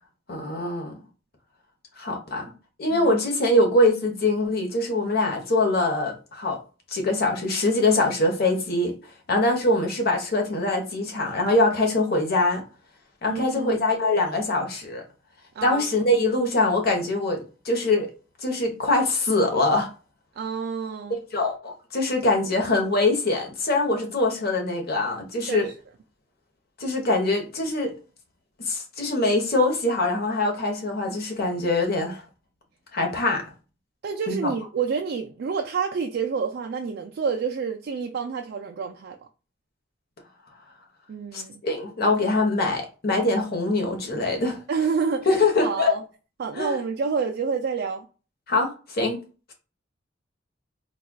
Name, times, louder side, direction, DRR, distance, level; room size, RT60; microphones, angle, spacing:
voice 1, 0.3-1.0 2.0-2.5 2.8-6.6 6.9-8.9 9.3-12.6 13.2-15.0 15.6-18.1 18.4-19.9 21.3-25.7 26.8-27.9 28.7-32.2 32.9-33.4 34.3-34.5 41.3-44.6 45.3-45.9 46.5-46.8 48.5-49.2, left 2 dB, 55° left, 1.1 m, -23 dB
voice 2, 13.3-13.9 15.6-15.9 20.4-21.2 25.5-25.7 34.0-39.2 41.1-41.6 44.7-46.0 46.4-48.1, right 5 dB, 55° right, 0.4 m, -28 dB
4.3 x 2.4 x 2.3 m
head